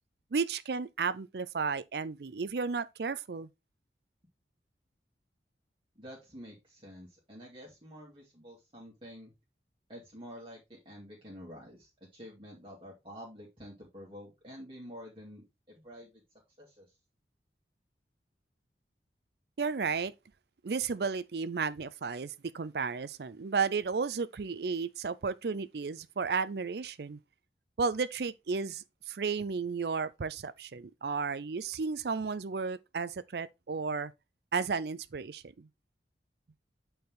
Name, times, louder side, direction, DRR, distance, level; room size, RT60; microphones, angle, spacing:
voice 1, 0.3-3.5 19.6-20.1 20.6-27.2 27.8-34.1 34.5-35.7, right 5 dB, 65° right, 0.5 m, -33 dB
voice 2, 6.0-9.3 9.9-16.1 16.6-16.9, equal, 30° right, 2.3 m, -49 dB
8.5 x 4.4 x 3.8 m
head